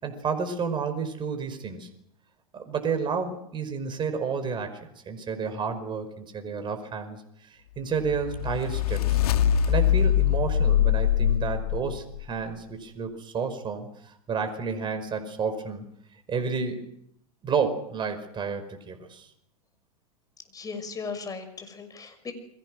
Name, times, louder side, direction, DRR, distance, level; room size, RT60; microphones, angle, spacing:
voice 1, 0.0-1.9 2.5-9.2 9.7-15.9 16.3-16.8 17.4-19.3, right 5 dB, 25° right, 7 dB, 5.2 m, -31 dB
sound 1, 8.0-12.3, left 10 dB, 75° left, 2.5 m, -23 dB
voice 2, 20.5-22.3, left 5 dB, 20° left, 8 dB, 6.1 m, -37 dB
30.0 x 22.5 x 6.4 m, 0.73 s
hypercardioid pair, 115°, 19 cm